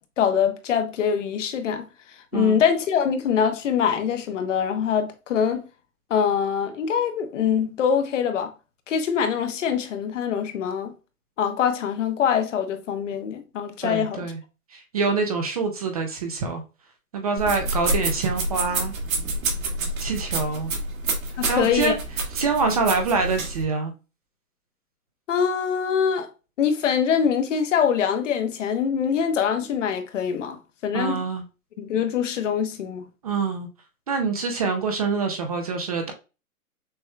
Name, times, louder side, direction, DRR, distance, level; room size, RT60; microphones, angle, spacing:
voice 1, 0.2-1.9 2.3-5.6 6.1-8.5 8.9-10.9 11.4-14.3 21.4-21.9 25.3-26.3 26.6-31.2 31.8-33.0, left 7 dB, 55° left, 0.9 m, -24 dB
voice 2, 13.8-14.4 14.7-16.6 17.1-18.9 20.0-20.7 21.5-22.0 22.3-23.9 30.9-31.4 33.2-33.7 34.1-36.1, right 4 dB, 25° right, 0.5 m, -25 dB
sound 1, 17.4-23.6, right 2 dB, 65° right, 1.8 m, -28 dB
6.3 x 3.0 x 2.2 m
hypercardioid pair, 145°, 44 cm